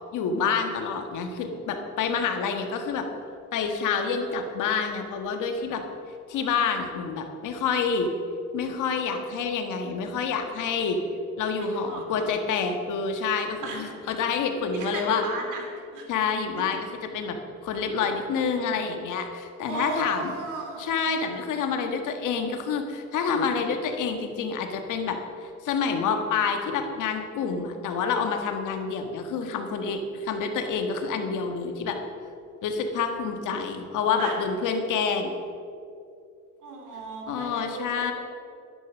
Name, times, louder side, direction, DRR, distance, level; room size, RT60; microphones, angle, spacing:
voice 1, 0.1-3.1 3.5-5.8 6.3-8.1 8.5-11.0 11.4-15.2 16.1-16.8 17.1-17.4 17.6-20.3 20.8-32.0 32.6-35.3 37.3-38.1, left 5 dB, 85° left, 5 dB, 1.5 m, -28 dB
voice 2, 2.1-2.6 11.6-12.3 13.6-14.0 14.7-15.6 15.9-16.1 19.7-20.8 21.2-21.3 34.2-34.4 36.6-38.1, right 3 dB, 80° right, 1 dB, 2.9 m, -35 dB
12.0 x 10.0 x 6.2 m, 2.5 s
cardioid pair, 90°, 30 cm